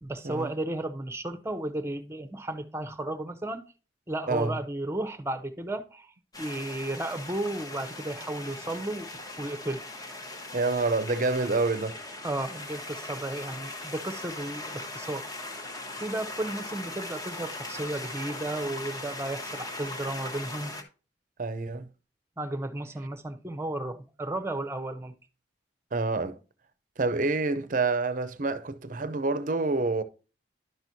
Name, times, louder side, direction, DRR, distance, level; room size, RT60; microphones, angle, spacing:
voice 1, 0.0-3.6 4.1-9.1 9.4-9.8 12.2-15.2 15.9-20.7 22.4-25.1, right 1 dB, 15° right, 0.7 m, -34 dB
voice 2, 4.3-4.6 10.5-12.0 21.4-21.9 25.9-26.4 27.0-30.0, right 3 dB, 45° right, 0.6 m, -27 dB
sound 1, 6.3-20.8, left 2 dB, 20° left, 1.0 m, -39 dB
11.0 x 6.1 x 2.7 m
head